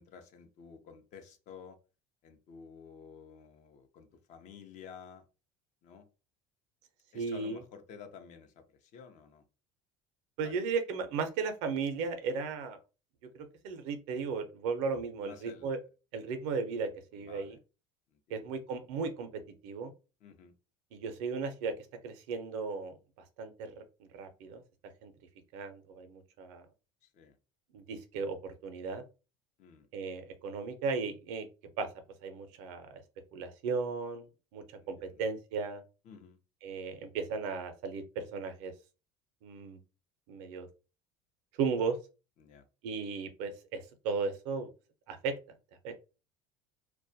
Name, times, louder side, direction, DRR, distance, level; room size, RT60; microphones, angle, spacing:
voice 1, 0.0-1.8 2.2-5.3 5.8-6.1 7.1-9.4 10.4-10.5 15.2-15.7 17.1-17.6 18.1-18.4 20.2-20.5 27.0-27.4 29.6-29.9 34.8-35.2 36.0-36.4 42.4-42.7, left 6 dB, 55° left, 0.6 m, -52 dB
voice 2, 7.1-7.6 10.4-12.8 13.3-15.8 16.1-17.6 18.3-19.3 19.6-19.9 20.9-21.7 22.0-23.0 23.4-23.8 24.1-24.6 25.0-25.1 25.5-26.7 27.7-29.0 29.9-31.5 31.8-31.9 32.2-33.0 33.3-34.3 34.5-35.8 36.6-38.7 39.4-39.8 40.3-40.7 41.6-42.0 42.8-44.7 45.1-45.3 45.8-45.9, right 5 dB, 80° right, 0.6 m, -35 dB
2.2 x 2.1 x 2.6 m
supercardioid pair, 95°, 15 cm